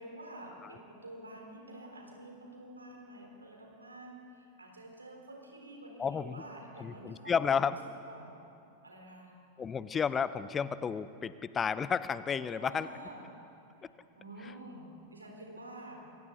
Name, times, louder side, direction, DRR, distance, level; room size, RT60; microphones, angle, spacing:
voice 1, 0.0-7.8 8.1-8.3 8.8-9.3 12.6-13.2 13.8-16.0, right 1 dB, 80° right, 0 dB, 4.0 m, -49 dB
voice 2, 6.0-6.4 6.8-7.8 9.6-12.9, left 6 dB, 20° left, 15 dB, 0.6 m, -32 dB
27.5 x 24.0 x 4.0 m, 2.7 s
figure-of-eight pair, 90°, 0 cm